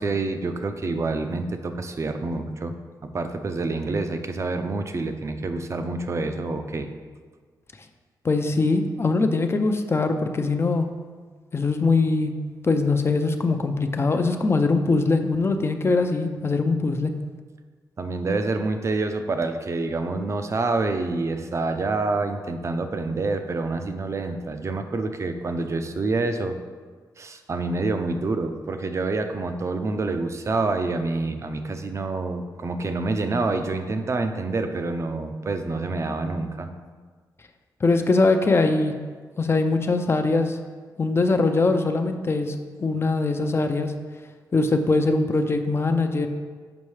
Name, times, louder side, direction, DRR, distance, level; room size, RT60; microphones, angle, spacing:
voice 1, 0.0-2.7 3.0-6.9 18.0-26.6 27.2-36.7, right 3 dB, 40° right, 7 dB, 0.5 m, -27 dB
voice 2, 8.2-10.9 11.5-12.3 12.6-17.1 37.8-38.9 39.4-40.6 41.0-43.9 44.5-46.3, left 3 dB, 35° left, 6 dB, 0.5 m, -22 dB
7.0 x 5.3 x 3.2 m, 1.5 s
cardioid pair, 85°, 7 cm